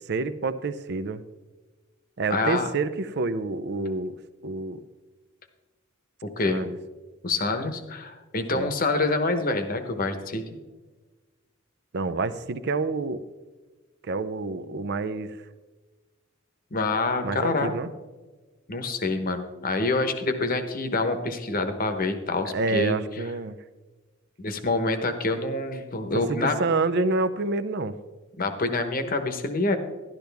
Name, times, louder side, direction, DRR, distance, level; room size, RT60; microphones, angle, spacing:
voice 1, 0.1-1.2 2.2-4.1 4.4-4.8 6.5-6.8 8.5-8.7 11.9-13.2 14.0-15.4 17.2-17.9 22.4-23.6 26.3-28.0, right 3 dB, 55° right, 14 dB, 0.5 m, -28 dB
voice 2, 2.3-2.7 6.2-6.7 7.2-10.4 16.7-17.7 18.7-23.0 24.4-26.6 28.4-29.8, left 3 dB, 45° left, 8 dB, 1.0 m, -26 dB
12.0 x 11.5 x 3.4 m, 1.3 s
head